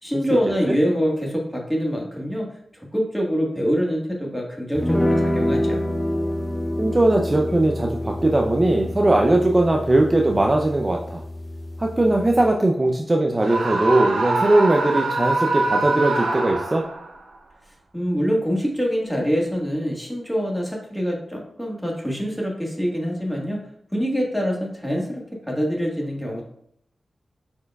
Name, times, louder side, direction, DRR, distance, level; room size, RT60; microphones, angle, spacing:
voice 1, 0.0-2.5 2.9-5.8 17.9-23.6 23.9-26.4, equal, 5° left, -1 dB, 1.5 m, -25 dB
sound 1, 4.8-12.5, left 1 dB, 20° left, 0.7 m, -27 dB
voice 2, 6.8-11.2 11.8-16.8, right 2 dB, 30° right, 1 dB, 0.5 m, -19 dB
Screaming, 13.4-17.1, right 2 dB, 85° right, 0.7 m, -24 dB
5.0 x 4.4 x 2.3 m, 0.71 s
cardioid pair, 60°, 0 cm